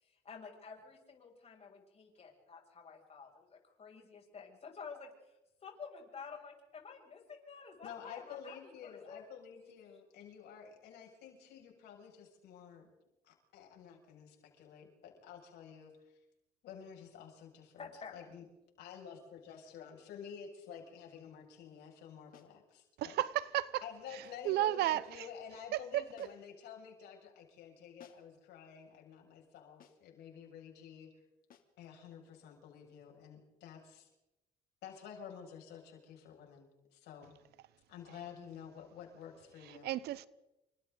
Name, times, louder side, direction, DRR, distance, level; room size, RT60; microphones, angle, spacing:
voice 1, 0.0-5.4 5.6-9.2 17.8-18.1, left 5 dB, 40° left, 7.4 m, -51 dB
voice 2, 7.8-12.9 13.2-15.9 16.6-18.4 18.8-23.2 23.8-31.1 31.8-34.1 34.8-37.3 37.9-39.9, left 8 dB, 80° left, 7.0 m, -51 dB
sound 1, 22.3-22.6 24.2-24.5 26.2-26.6 28.0-28.4 29.8-30.2 31.5-31.8, left 8 dB, 55° left, 2.9 m, -62 dB
voice 3, 23.0-23.8 24.1-25.3 25.7-26.3 39.6-40.3, right 14 dB, 75° right, 0.9 m, -34 dB
29.5 x 26.0 x 4.1 m
cardioid pair, 110°, 17 cm